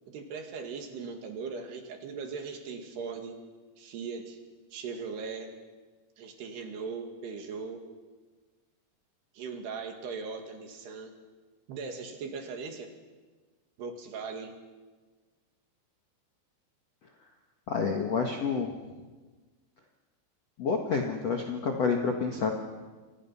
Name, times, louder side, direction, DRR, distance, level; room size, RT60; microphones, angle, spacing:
voice 1, 0.1-3.4 3.8-4.4 4.7-5.5 6.2-7.8 9.3-11.1 11.7-12.9 13.8-14.5, right 5 dB, 65° right, 4 dB, 4.0 m, -39 dB
voice 2, 17.7-18.7 20.6-22.5, left 5 dB, 60° left, 2 dB, 1.8 m, -28 dB
29.0 x 25.0 x 5.8 m, 1.3 s
omnidirectional pair, 5.5 m